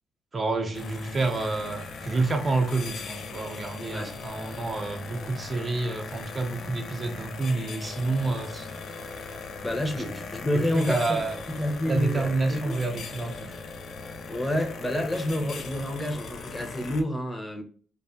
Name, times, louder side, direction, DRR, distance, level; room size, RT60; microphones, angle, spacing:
voice 1, 0.3-8.7 10.0-10.1 10.5-11.4 11.9-13.5, right 3 dB, 35° right, 0.4 m, -28 dB
sound 1, 0.7-17.0, left 4 dB, 60° left, 0.3 m, -39 dB
voice 2, 9.6-11.2 11.5-12.8 14.3-17.6, left 1 dB, 15° left, 0.6 m, -29 dB
2.5 x 2.3 x 2.4 m
cardioid pair, 90°, 0 cm